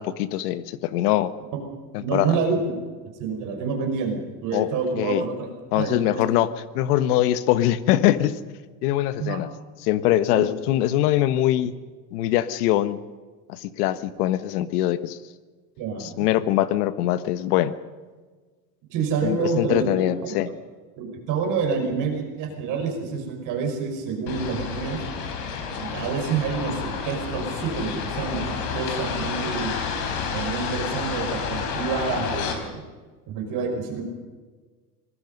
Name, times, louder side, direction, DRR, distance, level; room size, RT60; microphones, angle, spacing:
voice 1, 0.0-1.3 2.1-2.4 4.5-4.7 5.0-5.2 5.7-8.4 8.8-9.5 9.8-11.7 12.1-13.0 13.5-15.2 16.0-17.7 19.2-20.5, left 13 dB, 70° left, 13 dB, 1.5 m, -22 dB
voice 2, 2.0-2.8 3.2-5.5 5.7-6.3 9.2-9.4 10.3-10.5 15.8-16.3 18.9-19.9 20.2-20.4 21.0-25.0 25.8-29.7 30.3-32.8 33.3-34.0, right 5 dB, 40° right, 2 dB, 5.7 m, -28 dB
sound 1, 24.3-32.5, left 5 dB, 50° left, 4.5 m, -30 dB
26.5 x 19.5 x 5.4 m, 1.4 s
supercardioid pair, 165°, 47 cm